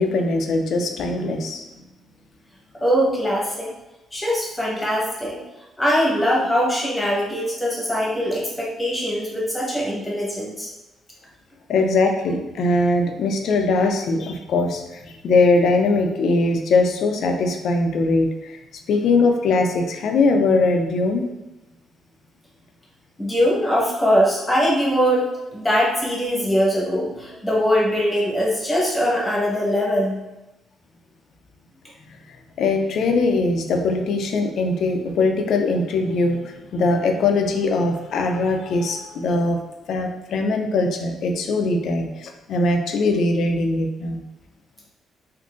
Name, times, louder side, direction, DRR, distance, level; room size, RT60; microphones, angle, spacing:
voice 1, 0.0-1.6 11.7-18.6 18.9-21.3 32.6-39.6 39.9-44.2, left 3 dB, 70° left, 4 dB, 0.4 m, -21 dB
voice 2, 2.8-3.7 4.1-5.4 5.8-10.7 23.2-30.2, equal, 15° left, -4 dB, 1.1 m, -21 dB
3.7 x 2.6 x 2.4 m, 1.0 s
cardioid pair, 90°, 0 cm